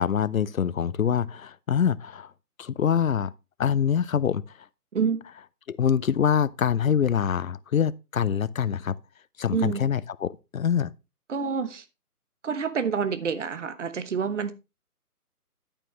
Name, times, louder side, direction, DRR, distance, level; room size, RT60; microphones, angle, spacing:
voice 1, 0.0-2.3 2.6-3.3 3.6-4.4 5.7-8.9 9.4-10.9, left 8 dB, 60° left, 0.7 m, -25 dB
voice 2, 9.5-9.8 11.3-11.8 12.4-14.5, right 6 dB, 50° right, 1.2 m, -27 dB
10.0 x 8.9 x 3.1 m
figure-of-eight pair, 145°, 46 cm